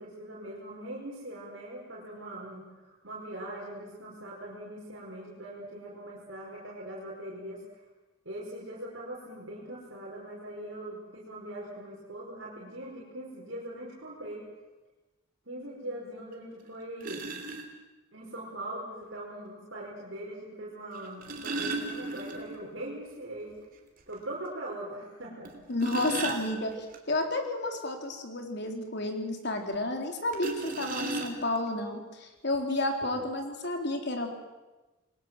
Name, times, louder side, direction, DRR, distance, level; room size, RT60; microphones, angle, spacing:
voice 1, 0.0-7.8 8.3-14.4 15.5-17.2 18.1-23.5 24.1-25.5, right 1 dB, 65° right, -4 dB, 5.2 m, -41 dB
sound 1, 16.3-16.4 17.0-17.6 19.0-19.1 20.9-22.7 23.0-23.1 23.5-23.6 24.1-24.2 25.4-27.0 30.3-31.7 32.5-32.6 33.0-33.2, right 3 dB, 45° right, 3.3 m, -36 dB
voice 2, 25.7-34.3, left 2 dB, 55° left, 4 dB, 4.0 m, -31 dB
28.5 x 22.0 x 7.6 m, 1.1 s
head